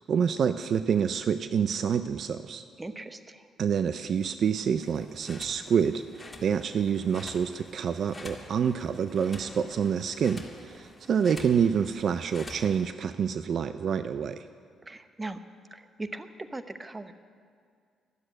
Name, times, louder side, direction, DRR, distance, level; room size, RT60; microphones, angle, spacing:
voice 1, 0.0-2.6 3.6-14.5, right 7 dB, 60° right, 12 dB, 0.4 m, -27 dB
voice 2, 2.8-3.5 14.9-15.4 15.7-17.1, right 2 dB, 20° right, 10 dB, 0.9 m, -39 dB
sound 1, 4.8-12.9, left 2 dB, 20° left, 2.0 m, -48 dB
12.5 x 7.8 x 10.0 m, 2.2 s
supercardioid pair, 60°, 0 cm